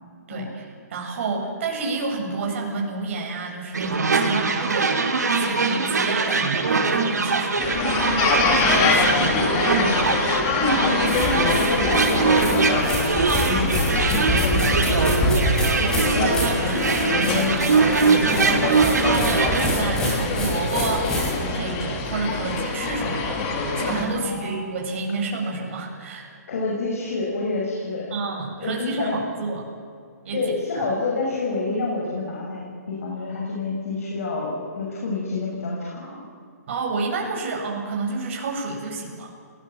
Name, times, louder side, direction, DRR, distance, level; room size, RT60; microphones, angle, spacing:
voice 1, 0.3-7.6 8.6-10.0 15.7-23.4 23.8-26.3 28.1-29.7 30.2-30.4 30.7-30.9 36.7-39.3, right 3 dB, 45° right, 0 dB, 7.8 m, -30 dB
sound 1, 3.7-19.7, right 4 dB, 90° right, 4.4 m, -22 dB
sound 2, 7.6-24.0, left 4 dB, 25° left, 3.7 m, -25 dB
voice 2, 7.8-8.2 8.6-8.9 10.5-13.2 13.5-15.4 24.1-24.6 26.5-28.1 28.6-29.2 30.3-36.2, left 3 dB, 55° left, -3 dB, 6.8 m, -28 dB
sound 3, 11.1-21.3, equal, 5° left, 6.1 m, -27 dB
29.5 x 20.0 x 7.6 m, 2.2 s
hypercardioid pair, 155°, 9 cm